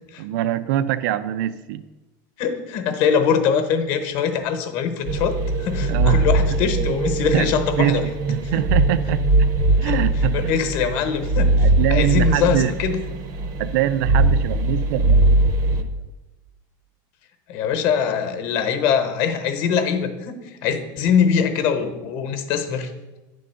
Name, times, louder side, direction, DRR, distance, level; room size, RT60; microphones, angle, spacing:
voice 1, 0.2-1.8 5.9-6.3 7.3-9.3 9.8-10.6 11.6-12.7 13.6-15.9, right 12 dB, 70° right, 13 dB, 0.4 m, -24 dB
voice 2, 2.4-8.1 8.4-8.6 9.8-13.0 17.5-22.9, left 7 dB, 50° left, 8 dB, 0.9 m, -23 dB
sound 1, 5.1-15.8, right 2 dB, 35° right, 0.6 m, -20 dB
9.3 x 3.8 x 6.7 m, 1.1 s
supercardioid pair, 170°, 11 cm